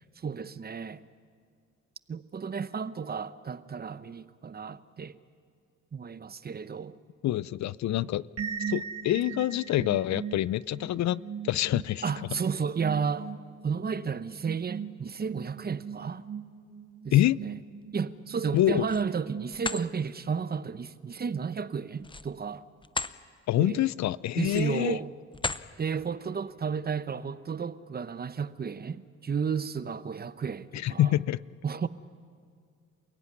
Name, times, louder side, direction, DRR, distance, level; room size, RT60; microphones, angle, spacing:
voice 1, 0.2-1.0 2.1-5.2 5.9-7.0 12.0-13.3 13.6-16.2 17.0-17.5 17.9-22.6 23.6-23.9 24.4-25.1 25.8-31.2 31.6-31.9, right 6 dB, 30° right, 0.9 m, -32 dB
voice 2, 7.2-8.3 8.7-12.0 17.1-17.4 18.5-18.9 23.5-25.0 30.7-31.4, left 14 dB, 65° left, 0.5 m, -26 dB
sound 1, 8.4-20.0, right 7 dB, 50° right, 2.0 m, -40 dB
sound 2, 18.5-19.1 19.5-19.9 22.0-23.2 23.6-23.8 24.4-24.8 25.3-25.7, left 3 dB, 15° left, 0.7 m, -35 dB
28.0 x 16.0 x 9.8 m
cardioid pair, 90°, 30 cm